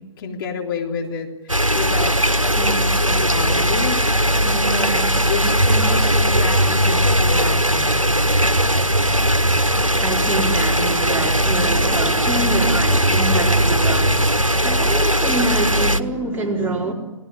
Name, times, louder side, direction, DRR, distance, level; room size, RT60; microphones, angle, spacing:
voice 1, 0.0-2.1 2.4-8.0, left 4 dB, 45° left, 3.6 m, -29 dB
sound 1, 1.5-16.0, right 1 dB, 90° right, 1.3 m, -18 dB
voice 2, 10.0-16.9, right 2 dB, 10° right, 4.1 m, -25 dB
29.0 x 18.5 x 9.6 m
figure-of-eight pair, 125°, 17 cm